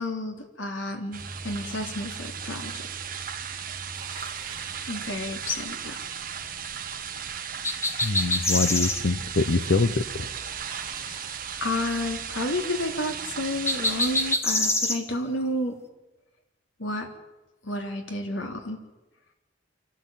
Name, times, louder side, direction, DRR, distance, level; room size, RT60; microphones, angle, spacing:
voice 1, 0.0-2.9 4.9-6.0 11.6-15.7 16.8-17.1 17.6-18.8, left 1 dB, 85° left, 3 dB, 3.4 m, -31 dB
sound 1, 1.1-14.4, right 7 dB, 45° right, 1.7 m, -36 dB
Bicycle, 3.9-5.0 10.6-11.8, right 4 dB, 25° right, 3.6 m, -46 dB
sound 2, 7.6-9.0 13.7-15.0, left 2 dB, 15° left, 1.4 m, -25 dB
voice 2, 8.0-10.3, left 3 dB, 60° left, 10 dB, 0.8 m, -24 dB
28.0 x 12.5 x 9.1 m, 1.1 s
head